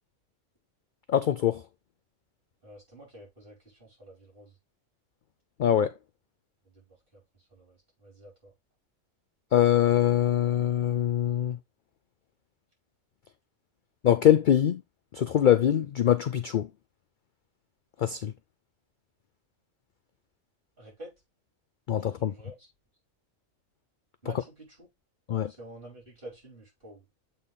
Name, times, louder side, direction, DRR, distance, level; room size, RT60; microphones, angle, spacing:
voice 1, 1.1-1.6 5.6-5.9 9.5-11.6 14.0-14.8 15.1-16.7 18.0-18.3 21.9-22.3 25.3-25.5, left 10 dB, 70° left, 0.4 m, -23 dB
voice 2, 2.6-4.5 6.7-6.9 7.1-7.2 7.5-8.5 20.8-21.1 22.0-22.7 24.2-24.9 25.5-27.0, right 1 dB, 40° right, 5.3 m, -49 dB
7.9 x 4.1 x 3.5 m
omnidirectional pair, 1.4 m